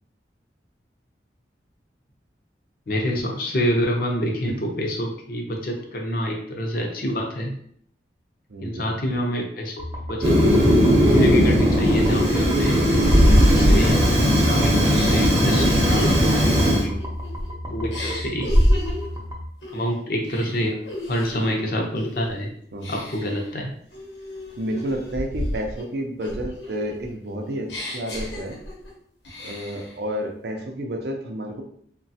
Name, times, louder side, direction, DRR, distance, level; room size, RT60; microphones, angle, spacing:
voice 1, 2.9-7.5 8.6-9.7 10.1-10.3 11.1-12.8 13.5-14.0 14.4-16.9 17.7-18.4 19.7-20.8 21.1-22.5 22.9-23.7, equal, 55° left, 1 dB, 0.6 m, -26 dB
voice 2, 8.5-9.0 16.6-17.0 22.7-23.0 24.6-28.6 29.4-31.6, right 1 dB, 70° right, 3 dB, 0.5 m, -30 dB
sound 1, 9.8-19.5, left 1 dB, 20° right, 0.4 m, -33 dB
Fire, 10.2-16.8, equal, 35° right, 0.8 m, -18 dB
sound 2, 11.7-14.4 14.9-17.5 17.9-19.1 19.6-19.9 20.2-21.5 22.0-22.3 22.8-23.4 23.9-25.8 26.2-28.9 29.2-29.9, equal, 90° left, 0.9 m, -25 dB
3.1 x 2.2 x 2.7 m, 0.63 s
head